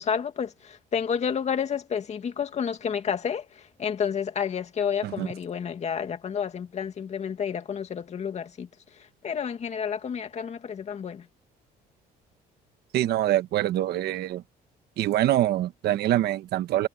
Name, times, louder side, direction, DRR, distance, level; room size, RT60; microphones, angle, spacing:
voice 1, 0.0-8.7 9.2-11.3, left 7 dB, 40° left, 2.3 m, -30 dB
voice 2, 12.9-14.4 15.0-16.9, right 13 dB, 70° right, 1.4 m, -25 dB
cardioid pair, 110°, 17 cm